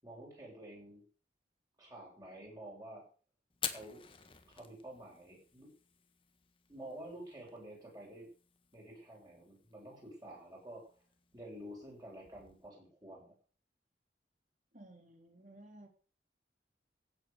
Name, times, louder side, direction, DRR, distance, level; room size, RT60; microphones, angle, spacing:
voice 1, 0.0-1.0 1.8-3.0 3.6-4.0 4.5-5.7 6.7-8.3 8.7-10.9 11.3-13.3, right 1 dB, 20° right, -2 dB, 7.1 m, -50 dB
Fire, 3.5-12.7, left 8 dB, 30° left, 1.5 m, -50 dB
voice 2, 14.7-15.9, right 1 dB, 40° right, 4 dB, 3.8 m, -55 dB
16.0 x 8.4 x 6.9 m, 0.40 s
head